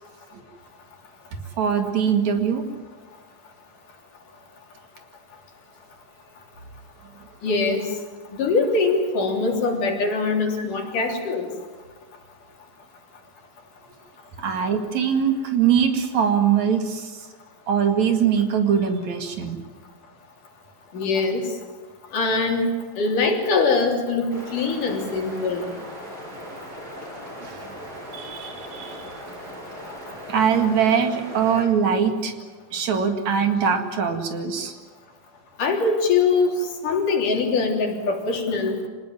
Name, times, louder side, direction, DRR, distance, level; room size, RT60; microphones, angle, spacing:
voice 1, 1.6-2.6 14.4-17.1 17.7-19.6 27.4-27.6 28.1-29.1 30.3-32.3 32.7-34.7, right 7 dB, 60° right, 6 dB, 3.2 m, -22 dB
voice 2, 7.4-7.9 8.4-11.5 20.9-21.5 22.1-22.7 23.0-25.7 35.6-38.8, left 4 dB, 75° left, 1 dB, 4.9 m, -22 dB
sound 1, 24.3-31.6, equal, 30° right, 6.6 m, -38 dB
26.5 x 19.0 x 9.1 m, 1.4 s
omnidirectional pair, 3.7 m